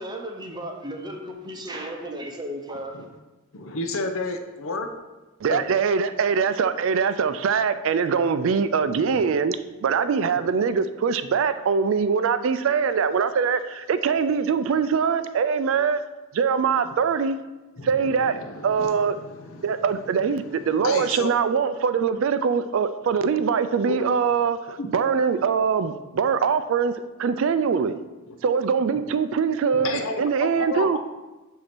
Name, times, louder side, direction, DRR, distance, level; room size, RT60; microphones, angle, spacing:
voice 1, 0.0-3.0, right 1 dB, 20° right, 0.7 m, -35 dB
voice 2, 3.5-4.9 5.5-5.6 9.0-9.3 16.9-17.0 17.8-21.3 23.9-24.0 24.8-24.9 28.3-28.4 29.7-31.0, left 3 dB, 70° left, 0.7 m, -32 dB
voice 3, 5.4-16.0 16.3-17.4 17.8-19.2 19.6-24.6 24.9-26.9 27.2-28.0 28.4-31.0, right 6 dB, 65° right, 0.3 m, -23 dB
7.8 x 2.8 x 6.0 m
head